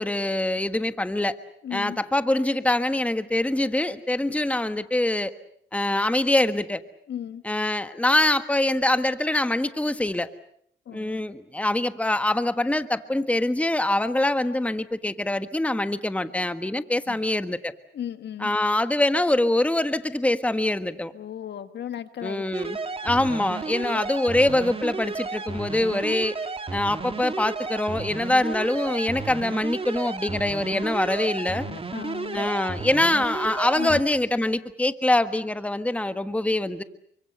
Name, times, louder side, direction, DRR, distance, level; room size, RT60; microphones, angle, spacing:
voice 1, 0.0-1.4 1.7-5.3 5.7-6.8 7.4-10.3 10.9-17.7 18.4-21.1 22.2-22.8 23.0-26.4 26.7-31.7 32.3-36.8, left 1 dB, 5° left, 11 dB, 1.4 m, -24 dB
voice 2, 1.6-2.0 7.1-7.4 10.9-11.2 17.1-17.2 17.9-18.5 21.1-22.7 23.7-24.0 31.5-32.5 33.8-34.0, left 10 dB, 60° left, 11 dB, 1.6 m, -36 dB
sound 1, 22.5-34.0, right 4 dB, 30° right, 2.5 m, -33 dB
29.5 x 25.0 x 6.7 m, 0.66 s
cardioid pair, 90°, 20 cm